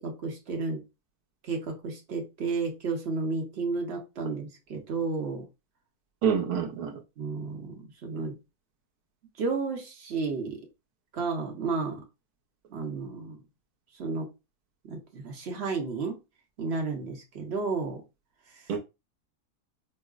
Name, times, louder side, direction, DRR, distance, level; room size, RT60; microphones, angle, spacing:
voice 1, 0.0-0.8 1.4-5.5 7.2-8.4 9.4-10.6 11.1-12.0 12.7-13.4 13.9-14.3 14.8-16.2 16.6-18.0 18.5-18.7, right 4 dB, 50° right, 0.9 m, -32 dB
voice 2, 6.2-7.0 18.7-18.8, right 7 dB, 85° right, 1.2 m, -27 dB
5.3 x 2.0 x 2.4 m
omnidirectional pair, 1.6 m